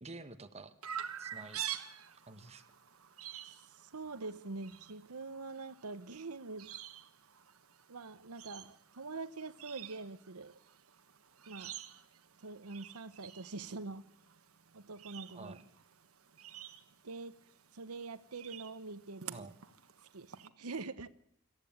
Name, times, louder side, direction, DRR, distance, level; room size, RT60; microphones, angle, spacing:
voice 1, 0.0-0.7 1.2-1.6 2.3-2.6 15.3-15.6 19.3-19.5, right 3 dB, 30° right, 1.3 m, -49 dB
Chirp tweet, 0.8-20.5, right 10 dB, 70° right, 1.4 m, -49 dB
voice 2, 3.4-6.7 7.9-10.5 11.5-11.8 12.4-14.1 14.7-15.6 17.0-17.4 17.7-19.5 20.1-21.1, right 3 dB, 90° right, 1.0 m, -44 dB
26.0 x 14.5 x 8.8 m
head